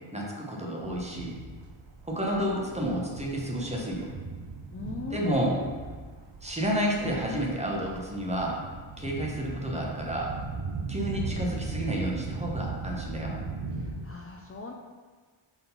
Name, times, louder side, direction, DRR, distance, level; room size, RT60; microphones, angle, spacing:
voice 1, 0.0-1.4 2.0-4.1 5.1-5.6 6.4-8.6 9.0-10.3 10.9-13.4, equal, 15° right, -2 dB, 1.0 m, -30 dB
sound 1, 0.8-14.1, right 4 dB, 70° right, 0.7 m, -38 dB
voice 2, 4.7-5.8 13.7-14.7, left 3 dB, 30° left, -1 dB, 0.4 m, -40 dB
4.5 x 3.8 x 5.4 m, 1.5 s
wide cardioid pair, 120°, 47 cm